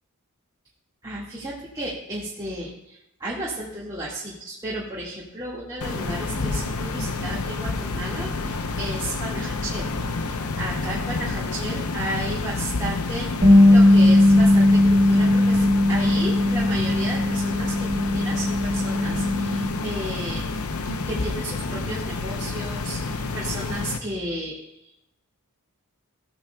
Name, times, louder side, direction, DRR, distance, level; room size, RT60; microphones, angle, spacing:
voice 1, 1.0-9.9 10.2-13.3 13.7-20.5 20.8-25.1, right 1 dB, 20° right, -7 dB, 1.8 m, -33 dB
sound 1, 5.8-24.0, left 3 dB, 70° left, 0.7 m, -29 dB
Bass guitar, 13.4-19.7, left 1 dB, 45° right, 2.5 m, -18 dB
15.5 x 8.8 x 2.3 m, 0.84 s
head